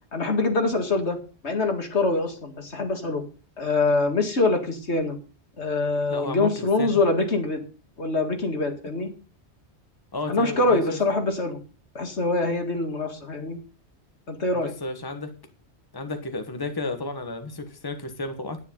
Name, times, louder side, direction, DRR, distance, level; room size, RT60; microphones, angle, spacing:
voice 1, 0.1-1.2 1.4-3.2 3.6-5.2 5.6-7.6 8.0-9.1 10.3-11.6 11.9-13.6 14.3-14.7, left 3 dB, 75° left, 5 dB, 2.3 m, -24 dB
voice 2, 6.1-6.9 10.1-11.0 14.5-15.3 15.9-18.6, left 3 dB, 20° left, 7 dB, 1.4 m, -32 dB
10.0 x 9.9 x 5.4 m, 0.35 s
omnidirectional pair, 1.2 m